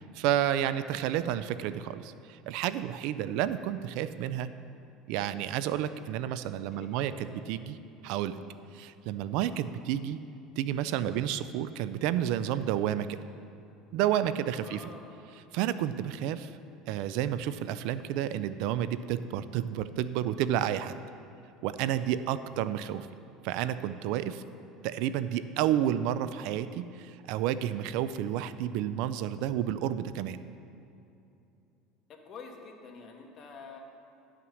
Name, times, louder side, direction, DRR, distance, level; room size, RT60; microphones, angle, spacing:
voice 1, 0.1-4.5 5.1-7.8 8.0-8.4 8.7-10.2 10.6-13.2 13.9-14.8 15.5-16.5 16.9-21.0 21.6-23.1 23.4-24.4 24.8-30.4, right 11 dB, 65° right, 13 dB, 0.4 m, -30 dB
voice 2, 6.7-7.7 14.4-15.3 24.3-24.7 32.1-33.8, left 4 dB, 35° left, 2 dB, 1.3 m, -49 dB
11.0 x 5.8 x 6.3 m, 2.7 s
cardioid pair, 140°, 0 cm